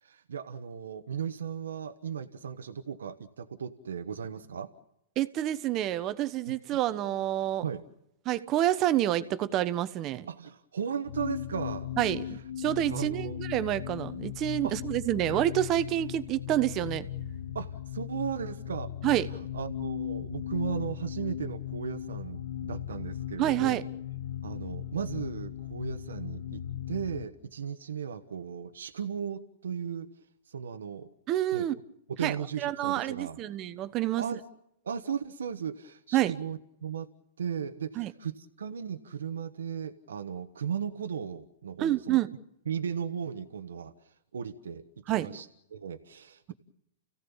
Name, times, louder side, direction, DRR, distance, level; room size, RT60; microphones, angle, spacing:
voice 1, 0.0-4.7 7.6-7.8 10.3-11.9 12.9-13.4 14.6-14.7 17.5-18.9 19.5-23.9 24.4-26.6 26.9-30.1 30.5-31.1 31.5-31.7 32.2-33.4 34.2-34.4 34.8-37.1 37.4-42.2 42.7-43.9 44.3-45.5 45.7-46.5, right 7 dB, 85° right, 1.2 m, -36 dB
voice 2, 5.2-7.6 8.3-10.3 12.0-17.1 19.0-19.3 23.4-23.8 31.3-31.8 32.2-34.2 36.1-36.3 38.0-38.1 41.8-42.3 45.1-45.4, right 13 dB, 35° right, 1.1 m, -28 dB
sound 1, 11.0-27.3, left 10 dB, 75° left, 1.1 m, -37 dB
30.0 x 16.5 x 7.2 m
hypercardioid pair, 125°, 0 cm